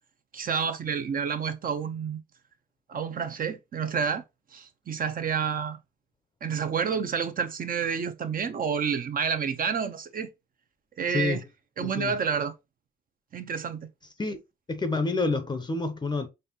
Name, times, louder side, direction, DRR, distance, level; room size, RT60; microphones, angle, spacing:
voice 1, 0.3-2.2 2.9-4.2 4.5-5.8 6.4-10.3 11.0-11.4 11.8-12.5 13.3-13.9, right 6 dB, 45° right, 0.7 m, -29 dB
voice 2, 11.1-11.4 11.8-12.1 14.2-14.4 14.7-16.3, left 3 dB, 20° left, 0.6 m, -28 dB
4.1 x 3.2 x 2.8 m
cardioid pair, 90°, 20 cm